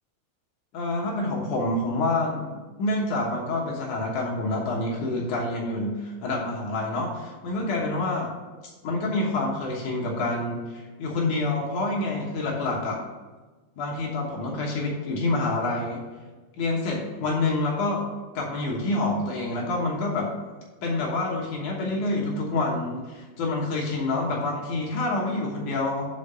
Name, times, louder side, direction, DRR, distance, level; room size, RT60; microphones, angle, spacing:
voice 1, 0.7-8.3 8.6-13.0 13.8-16.0 16.6-18.1 18.3-20.3 20.8-26.1, left 2 dB, 65° left, -2 dB, 2.1 m, -27 dB
6.4 x 5.2 x 6.8 m, 1.3 s
omnidirectional pair, 4.8 m